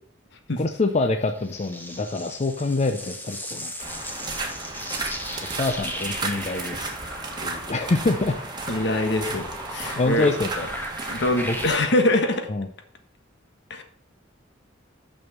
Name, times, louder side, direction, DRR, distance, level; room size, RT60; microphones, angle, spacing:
voice 1, 0.6-3.7 5.5-6.9 7.4-8.3 10.0-10.7 11.4-11.6 12.5-12.7, left 2 dB, 35° left, 6 dB, 0.6 m, -25 dB
sound 1, 1.0-11.6, left 1 dB, 10° left, 1.4 m, -37 dB
sound 2, 3.8-11.8, right 3 dB, 25° right, 1.5 m, -34 dB
voice 2, 8.7-10.3 11.0-12.5 13.7-13.8, left 1 dB, 65° left, 6 dB, 1.4 m, -24 dB
6.4 x 6.2 x 7.1 m, 0.63 s
head